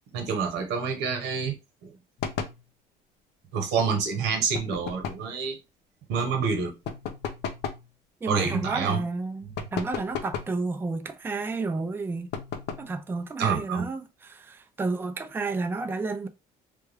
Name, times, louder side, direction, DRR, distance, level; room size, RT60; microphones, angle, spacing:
voice 1, 0.1-1.5 1.8-1.9 3.5-5.6 6.1-6.7 8.3-9.0 13.4-13.9, right 5 dB, 90° right, 1.0 m, -27 dB
toc-toc, 2.2-2.6 4.5-5.3 6.9-7.9 9.6-10.6 12.3-13.0, left 7 dB, 80° left, 0.6 m, -34 dB
voice 2, 8.2-12.3 12.8-16.3, right 3 dB, 15° right, 0.4 m, -31 dB
3.3 x 2.2 x 3.4 m
cardioid pair, 110°, 17 cm